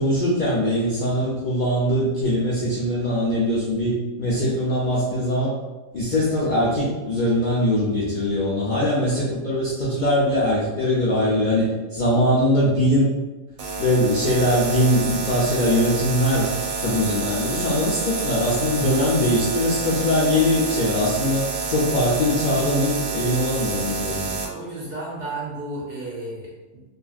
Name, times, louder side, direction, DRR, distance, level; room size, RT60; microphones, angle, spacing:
voice 1, 0.0-5.5 5.9-13.1 13.8-16.5 16.8-24.3, left 1 dB, 65° left, -6 dB, 0.4 m, -21 dB
sound 1, 13.6-24.5, right 4 dB, 85° right, 1.0 m, -28 dB
voice 2, 24.5-26.8, right 2 dB, 60° right, -6 dB, 0.7 m, -33 dB
3.0 x 2.5 x 2.4 m, 1.2 s
omnidirectional pair, 1.5 m